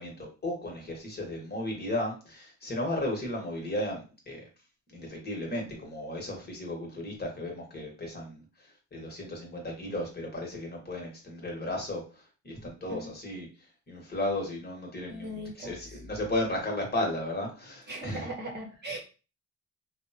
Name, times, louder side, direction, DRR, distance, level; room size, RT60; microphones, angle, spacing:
voice 1, 0.0-4.4 4.9-12.0 12.4-13.5 13.9-18.3, left 1 dB, 30° left, 0 dB, 1.2 m, -34 dB
voice 2, 15.1-16.0 17.9-19.0, right 1 dB, 35° right, 1 dB, 0.9 m, -39 dB
3.0 x 2.1 x 2.7 m, 0.33 s
cardioid pair, 90°, 30 cm